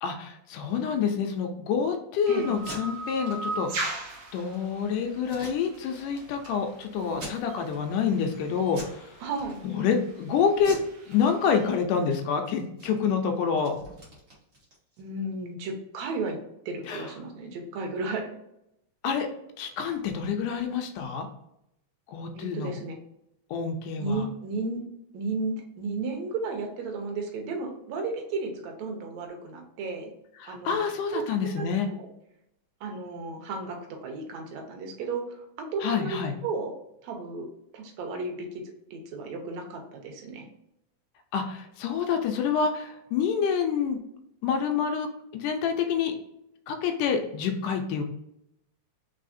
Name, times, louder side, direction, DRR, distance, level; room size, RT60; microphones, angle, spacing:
voice 1, 0.0-4.0 4.3-9.2 9.6-10.8 11.1-13.7 16.9-17.1 19.0-19.3 19.6-21.3 22.1-22.7 23.5-24.3 30.4-31.9 35.8-36.3 41.3-44.0 44.4-45.1 45.3-46.1 46.7-48.0, left 6 dB, 80° left, 5 dB, 2.1 m, -27 dB
sound 1, 2.2-11.8, right 2 dB, 90° right, 1.1 m, -40 dB
voice 2, 2.3-2.6 9.2-9.6 15.0-16.4 16.7-18.3 22.3-22.9 24.0-24.8 25.1-30.1 30.5-30.8 31.1-31.3 31.6-32.1 32.8-35.5 35.7-36.7 37.0-37.5 37.7-38.6 38.9-40.5, right 3 dB, 70° right, 2 dB, 2.0 m, -34 dB
Packing tape duct tape, 2.5-2.8 3.2-3.4 3.6-3.7 4.2-4.6 5.2-6.0 6.4-6.5 7.1-7.8 8.2-8.4 8.7-9.0 9.3-9.9 10.6-11.7 12.0-12.2 12.4-15.1, right 1 dB, 40° right, 1.1 m, -44 dB
4.6 x 4.1 x 2.6 m, 0.80 s
omnidirectional pair, 3.7 m